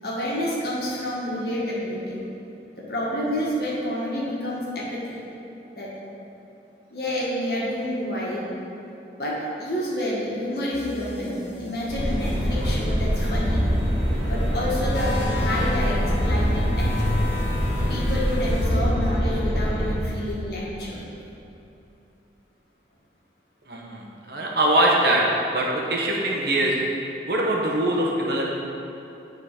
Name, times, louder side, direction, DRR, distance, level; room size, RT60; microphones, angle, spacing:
voice 1, 0.0-2.2 2.8-5.2 5.7-5.9 6.9-8.4 9.2-13.6 14.3-16.9 17.9-21.0, left 1 dB, 60° left, -6 dB, 1.7 m, -29 dB
sound 1, 10.7-18.7, left 2 dB, 85° left, 1.3 m, -34 dB
sound 2, 11.9-19.9, equal, 35° right, 1.6 m, -24 dB
voice 2, 23.7-25.2 25.5-26.7 27.3-28.5, right 1 dB, 65° right, -3 dB, 1.1 m, -22 dB
8.7 x 4.0 x 5.1 m, 2.9 s
head